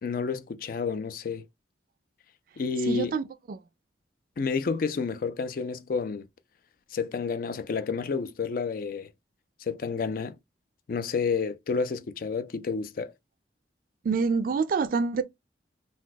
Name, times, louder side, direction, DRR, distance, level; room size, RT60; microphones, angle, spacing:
voice 1, 0.0-1.5 2.6-3.2 4.4-6.3 6.9-9.1 9.6-10.4 10.9-13.1, left 5 dB, 50° left, 0.4 m, -30 dB
voice 2, 2.9-3.6 14.0-15.2, right 5 dB, 50° right, 0.3 m, -26 dB
2.6 x 2.2 x 3.8 m
head